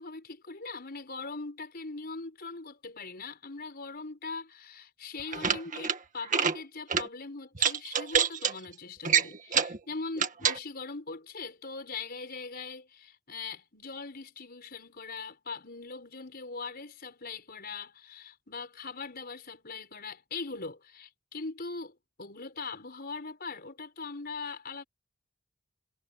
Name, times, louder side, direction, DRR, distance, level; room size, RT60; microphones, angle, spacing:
voice 1, 0.0-24.8, left 4 dB, 45° left, 5.3 m, -41 dB
sound 1, 5.2-6.0 6.2-6.6 6.9-7.1 7.6-8.5 9.0-9.8 10.2-10.6, right 7 dB, 40° right, 1.8 m, -26 dB
head